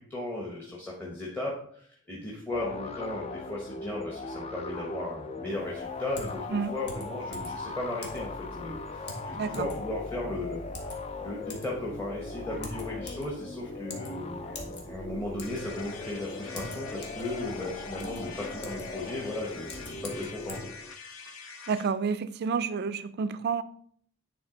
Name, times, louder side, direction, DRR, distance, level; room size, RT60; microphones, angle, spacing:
voice 1, 0.1-20.6, left 2 dB, 10° left, 1.0 m, -36 dB
sound 1, 2.5-20.9, left 3 dB, 30° left, 0.4 m, -39 dB
Typing, 5.5-20.6, left 1 dB, 55° left, 1.3 m, -46 dB
voice 2, 9.3-9.7 21.7-23.6, right 5 dB, 50° right, 0.4 m, -29 dB
sound 2, 15.4-21.9, left 5 dB, 80° left, 0.9 m, -45 dB
9.6 x 3.5 x 3.8 m
head